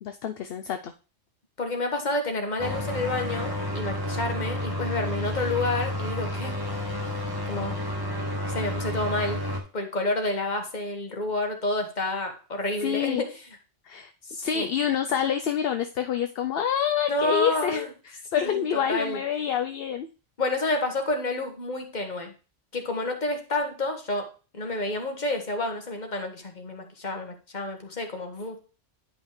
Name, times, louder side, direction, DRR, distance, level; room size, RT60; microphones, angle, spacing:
voice 1, 0.0-0.9 12.8-13.2 13.8-14.1 14.4-20.1, left 8 dB, 60° left, 7 dB, 0.7 m, -27 dB
voice 2, 1.6-6.7 7.5-7.8 8.4-9.4 9.7-13.3 14.3-14.7 17.1-17.9 18.4-19.2 20.4-22.3 22.7-24.3 24.5-28.6, left 2 dB, 40° left, 4 dB, 1.4 m, -29 dB
sound 1, 2.6-9.6, left 1 dB, 20° right, 1.5 m, -30 dB
10.5 x 5.3 x 3.1 m, 0.34 s
omnidirectional pair, 1.2 m